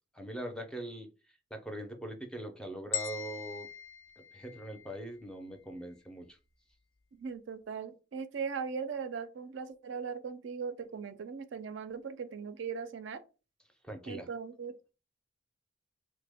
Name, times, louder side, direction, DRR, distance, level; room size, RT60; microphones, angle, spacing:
voice 1, 0.1-1.1 1.5-3.7 4.3-6.4 13.8-14.3, right 1 dB, 5° left, 0.4 m, -42 dB
sound 1, 2.9-5.1, left 9 dB, 80° left, 0.5 m, -40 dB
voice 2, 7.1-13.2 14.1-14.7, right 6 dB, 65° right, 0.4 m, -39 dB
3.3 x 2.1 x 3.4 m
head